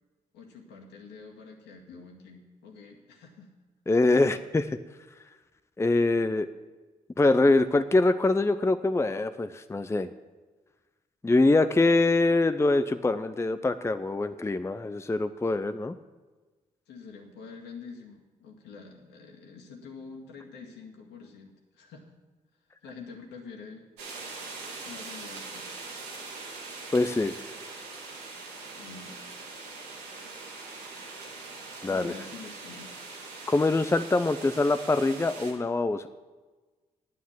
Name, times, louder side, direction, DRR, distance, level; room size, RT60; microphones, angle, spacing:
voice 1, 0.3-3.5 16.9-22.1 22.8-23.9 24.8-25.7 28.7-29.5 31.9-32.9, left 5 dB, 75° left, 0 dB, 2.0 m, -46 dB
voice 2, 3.9-4.7 5.8-6.5 7.2-10.1 11.2-16.0 26.9-27.4 31.8-32.1 33.5-36.1, left 2 dB, 15° left, 11 dB, 0.6 m, -24 dB
sound 1, 24.0-35.5, right 3 dB, 85° right, 1.8 m, -42 dB
9.4 x 9.2 x 7.3 m, 1.3 s
hypercardioid pair, 40°, 18 cm